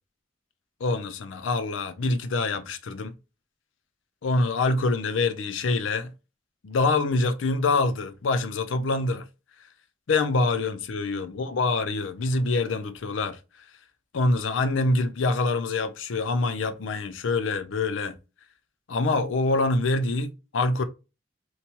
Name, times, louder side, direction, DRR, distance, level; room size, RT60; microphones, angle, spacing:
voice 1, 0.8-3.1 4.2-6.1 6.6-9.2 10.1-13.4 14.1-18.2 18.9-20.8, left 3 dB, 85° left, 0.5 m, -25 dB
2.8 x 2.2 x 2.8 m
head